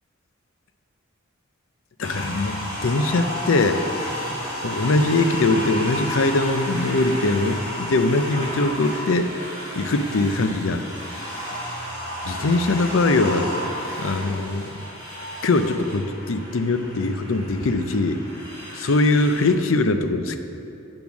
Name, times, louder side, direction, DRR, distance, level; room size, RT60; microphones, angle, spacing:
voice 1, 2.0-3.8 4.3-9.3 9.8-10.9 12.3-13.5 14.0-14.8 15.4-18.2 18.7-20.4, left 2 dB, 75° left, 8 dB, 0.6 m, -22 dB
sound 1, 2.0-19.5, equal, 40° left, 2.5 m, -32 dB
8.0 x 7.0 x 6.1 m, 2.8 s
head